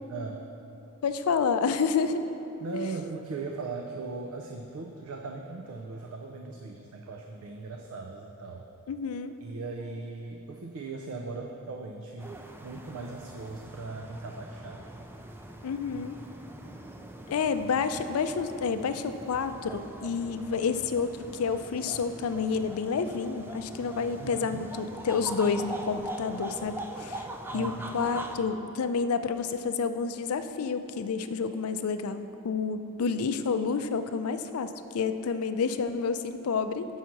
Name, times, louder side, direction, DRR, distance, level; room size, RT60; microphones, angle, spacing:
voice 1, 0.1-0.4 2.6-8.7 9.4-14.8 24.2-24.7 27.5-28.0, right 3 dB, 70° right, 2 dB, 0.5 m, -39 dB
voice 2, 1.0-2.2 2.7-2.9 8.9-9.3 15.6-16.2 17.3-27.2 27.5-36.9, left 5 dB, 75° left, 10 dB, 0.4 m, -29 dB
sound 1, 12.2-28.4, right 1 dB, 10° right, 0.3 m, -42 dB
6.2 x 5.6 x 5.9 m, 3.0 s
head